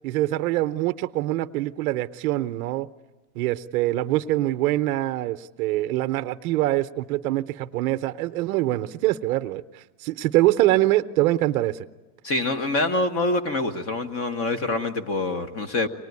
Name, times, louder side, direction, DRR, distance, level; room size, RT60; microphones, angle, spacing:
voice 1, 0.0-2.9 3.4-11.9, right 16 dB, 60° right, 10 dB, 0.8 m, -24 dB
voice 2, 12.2-15.9, left 2 dB, 30° left, 12 dB, 1.4 m, -25 dB
24.0 x 20.0 x 9.5 m, 1.2 s
supercardioid pair, 145°, 49 cm